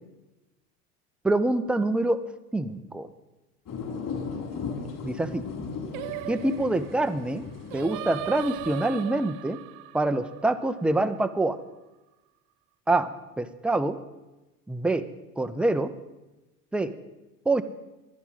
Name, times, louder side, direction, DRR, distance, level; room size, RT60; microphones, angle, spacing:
voice 1, 1.2-2.2 2.5-3.1 5.0-5.4 6.3-7.4 7.7-9.6 9.9-11.6 12.9-13.1 13.4-14.0 14.7-15.0 15.4-15.9 16.7-16.9 17.5-17.6, right 2 dB, ahead, 10 dB, 0.5 m, -25 dB
sound 1, 3.7-8.8, left 5 dB, 45° left, 4.5 m, -37 dB
Singing, 5.9-11.2, right 16 dB, 60° right, 0.7 m, -38 dB
11.5 x 11.0 x 5.6 m, 1.1 s
hypercardioid pair, 75°, 48 cm